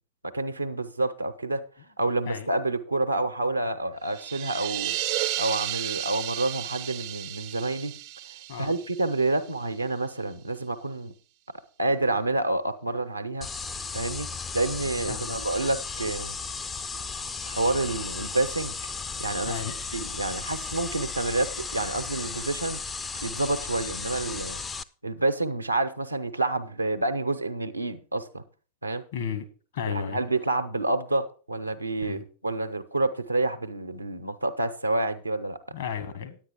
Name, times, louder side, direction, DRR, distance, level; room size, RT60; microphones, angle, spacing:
voice 1, 0.2-1.6 2.0-5.0 5.4-7.9 8.6-11.1 11.8-13.5 13.9-14.3 14.5-16.3 17.5-18.7 19.2-19.6 19.9-22.8 23.2-24.6 25.0-28.4 28.8-29.0 29.9-35.6, right 2 dB, 85° right, 0.8 m, -28 dB
sound 1, 4.1-9.7, right 14 dB, 45° right, 0.5 m, -33 dB
sound 2, 13.4-24.8, left 4 dB, 15° left, 0.5 m, -35 dB
voice 2, 15.0-15.4 19.5-19.7 29.1-29.5 29.7-30.2 32.0-32.2 35.7-36.4, left 8 dB, 60° left, 1.5 m, -33 dB
9.9 x 8.8 x 4.4 m
figure-of-eight pair, 90°, 0 cm